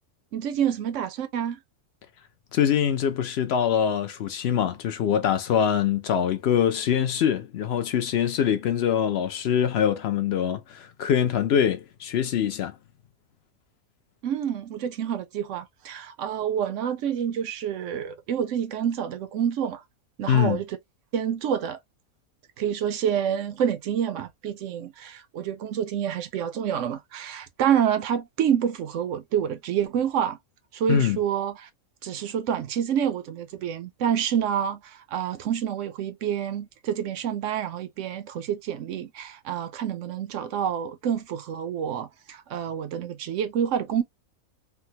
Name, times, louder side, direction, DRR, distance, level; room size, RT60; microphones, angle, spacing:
voice 1, 0.3-1.6 14.2-19.8 20.2-20.8 21.1-21.8 22.6-30.4 30.7-31.7 32.0-44.0, right 9 dB, 65° right, 0.8 m, -28 dB
voice 2, 2.5-12.7 20.3-20.6 30.9-31.2, left 9 dB, 65° left, 0.6 m, -24 dB
3.5 x 2.1 x 2.8 m
omnidirectional pair, 1.5 m